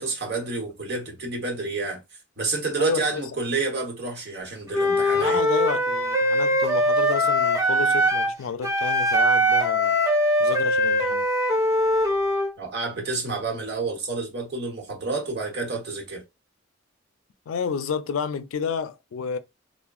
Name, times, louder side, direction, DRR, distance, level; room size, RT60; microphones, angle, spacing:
voice 1, 0.0-2.0 2.4-5.4 12.6-16.2, right 3 dB, 55° right, 0.9 m, -29 dB
voice 2, 2.8-3.2 5.1-10.0 10.4-11.3 17.5-19.4, left 6 dB, 90° left, 0.4 m, -30 dB
Wind instrument woodwind instrument, 4.7-8.3 8.6-12.5, equal, 15° right, 0.6 m, -22 dB
3.5 x 2.1 x 2.3 m
head